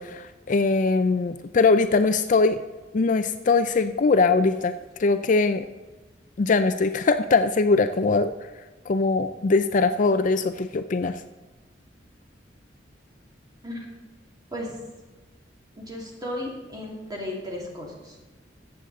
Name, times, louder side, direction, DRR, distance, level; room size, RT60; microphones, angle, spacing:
voice 1, 0.0-2.6 2.9-4.7 5.0-5.7 6.4-8.3 8.9-11.2, left 3 dB, 45° left, 10 dB, 0.4 m, -21 dB
voice 2, 15.8-18.3, left 1 dB, 20° right, -1 dB, 2.4 m, -35 dB
14.0 x 8.0 x 4.0 m, 1.2 s
head